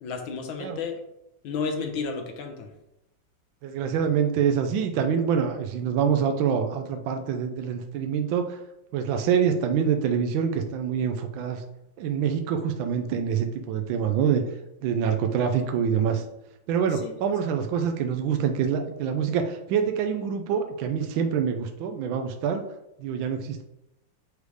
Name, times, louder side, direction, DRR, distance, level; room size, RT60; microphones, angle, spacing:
voice 1, 0.0-1.0 1.4-2.7 17.0-17.1, left 5 dB, 85° left, 5 dB, 1.6 m, -32 dB
voice 2, 3.6-8.6 8.9-11.6 12.0-14.4 14.8-16.2 16.7-22.6 23.0-23.6, right 7 dB, 80° right, 5 dB, 1.4 m, -25 dB
6.6 x 3.3 x 4.8 m, 0.87 s
omnidirectional pair, 2.1 m